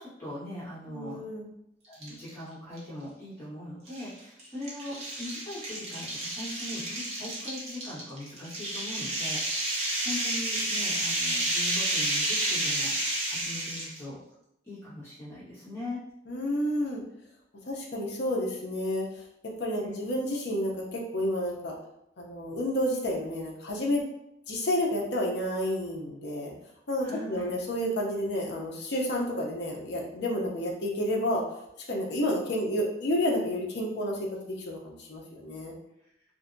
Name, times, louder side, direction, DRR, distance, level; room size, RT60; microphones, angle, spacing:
voice 1, 0.0-1.2 1.9-14.2 14.6-16.0 19.7-20.0 27.0-27.5, left 1 dB, 15° left, -12 dB, 1.3 m, -40 dB
voice 2, 0.9-1.5 16.3-17.0 17.7-19.1 19.6-21.7 22.2-24.0 24.5-26.5 26.9-31.4 31.9-34.2 34.4-35.7, left 1 dB, 60° left, -1 dB, 0.5 m, -30 dB
sound 1, 1.9-2.3 2.8-2.9 3.9-14.0, right 1 dB, 35° right, 0.7 m, -31 dB
2.6 x 2.1 x 2.5 m, 0.79 s
head